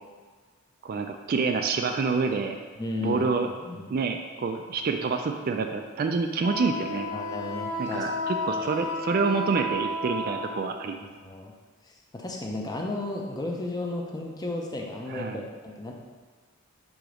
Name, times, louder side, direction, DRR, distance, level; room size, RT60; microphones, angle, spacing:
voice 1, 0.8-2.6 3.0-3.5 3.9-7.1 7.8-11.0 15.1-15.4, right 4 dB, 40° right, 5 dB, 0.3 m, -27 dB
voice 2, 2.8-3.9 7.1-8.1 8.6-8.9 11.0-11.5 11.8-15.9, left 2 dB, 15° left, 0 dB, 0.6 m, -34 dB
Wind instrument woodwind instrument, 6.4-10.9, left 1 dB, 70° left, 0.7 m, -32 dB
4.9 x 3.8 x 5.1 m, 1.5 s
head